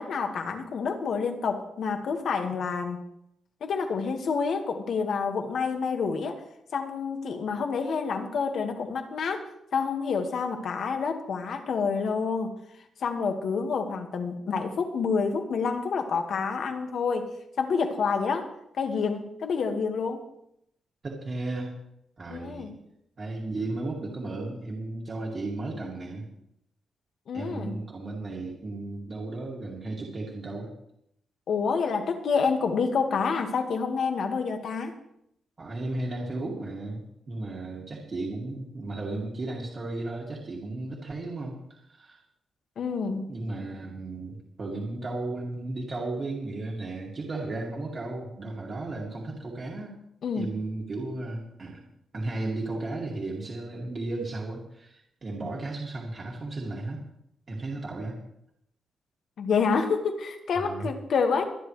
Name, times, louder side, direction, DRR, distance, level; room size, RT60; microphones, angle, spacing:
voice 1, 0.0-3.0 3.6-6.4 6.7-9.4 9.7-12.5 13.0-18.5 18.7-20.2 22.3-22.8 27.3-27.8 31.5-35.0 42.8-43.2 50.2-50.5 59.4-61.4, left 5 dB, 60° left, 5 dB, 1.8 m, -28 dB
voice 2, 21.0-21.7 22.2-22.7 23.2-26.2 27.3-30.7 35.6-42.2 43.3-49.9 50.4-51.8 52.1-57.0 57.5-58.2 60.5-60.9, right 2 dB, 35° right, -3 dB, 2.4 m, -34 dB
24.0 x 10.5 x 3.3 m, 0.76 s
wide cardioid pair, 155°, 0 cm